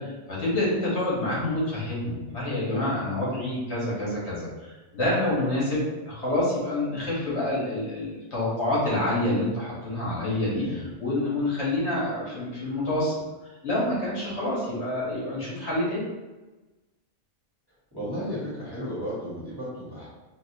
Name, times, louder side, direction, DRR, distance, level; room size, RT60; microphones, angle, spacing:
voice 1, 0.0-13.2 13.6-16.0, left 1 dB, 65° left, -7 dB, 1.6 m, -27 dB
voice 2, 10.5-10.8 17.9-20.1, equal, 20° right, -10 dB, 1.1 m, -34 dB
4.1 x 2.2 x 2.7 m, 1.1 s
omnidirectional pair, 1.2 m